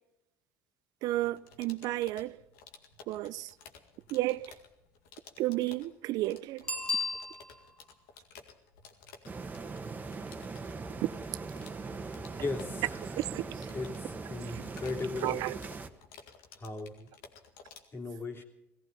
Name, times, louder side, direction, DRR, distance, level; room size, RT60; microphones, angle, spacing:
voice 1, 1.0-2.4 3.1-3.5 4.1-4.5 5.4-6.7 11.0-11.4 13.2-13.7 14.5-14.6 15.2-15.6, right 16 dB, 70° right, 0.6 m, -32 dB
sound 1, 1.1-17.8, left 5 dB, 85° left, 2.1 m, -55 dB
Bicycle bell, 6.6-7.8 13.3-13.4, left 3 dB, 15° left, 2.6 m, -34 dB
sound 2, 9.3-15.9, right 4 dB, 25° right, 1.5 m, -41 dB
voice 2, 12.4-12.8 13.7-13.9 14.3-15.4 16.6-17.1 17.9-18.4, left 3 dB, 35° left, 3.1 m, -36 dB
18.0 x 15.0 x 5.3 m
supercardioid pair, 95°, 7 cm